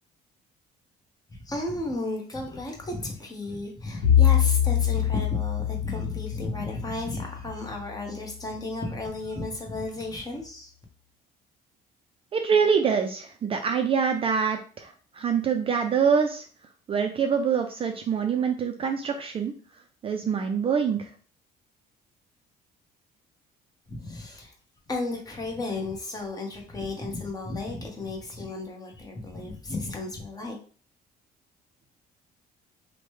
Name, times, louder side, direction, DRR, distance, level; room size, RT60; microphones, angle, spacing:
voice 1, 1.3-10.7 23.9-24.5 24.9-30.6, left 2 dB, 20° left, 0 dB, 0.9 m, -33 dB
Bowed string instrument, 4.0-8.2, left 10 dB, 80° left, 0.7 m, -24 dB
voice 2, 12.3-16.4 16.9-19.5 20.0-21.1, right 6 dB, 35° right, 5 dB, 0.4 m, -25 dB
3.0 x 2.1 x 3.1 m, 0.40 s
cardioid pair, 110°, 17 cm